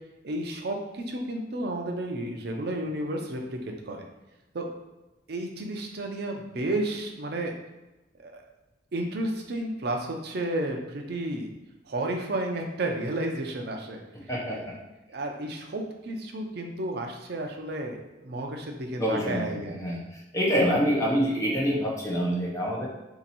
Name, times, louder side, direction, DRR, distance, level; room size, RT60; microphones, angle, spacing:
voice 1, 0.2-3.4 3.9-4.1 4.5-4.7 5.3-7.5 8.2-8.4 8.9-11.5 11.9-14.0 14.5-14.6 15.1-19.8, right 1 dB, 55° right, 2 dB, 0.5 m, -32 dB
voice 2, 14.3-14.7 19.0-20.0 20.3-22.9, equal, 15° left, -4 dB, 0.7 m, -26 dB
2.8 x 2.6 x 4.1 m, 1.0 s
head